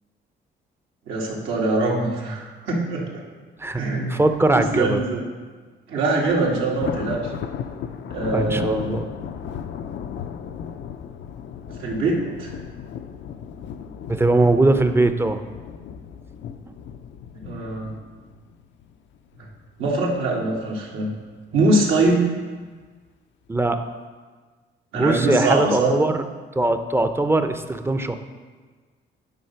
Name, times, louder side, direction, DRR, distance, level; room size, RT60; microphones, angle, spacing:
voice 1, 1.1-3.2 3.7-4.2 4.5-5.3 5.9-7.3 8.1-9.0 11.8-12.5 17.3-17.9 19.8-21.1 21.5-22.3 24.9-25.9, right 2 dB, 85° right, -3 dB, 1.9 m, -23 dB
voice 2, 4.1-5.0 8.3-9.1 14.1-15.4 23.5-23.8 24.9-26.2 26.5-28.2, right 2 dB, 10° right, 8 dB, 0.6 m, -20 dB
Thunder, 6.2-19.5 19.9-20.2 20.6-20.7 21.6-22.1, left 8 dB, 70° left, 0.5 m, -36 dB
9.4 x 4.2 x 5.7 m, 1.5 s
cardioid pair, 90°, 20 cm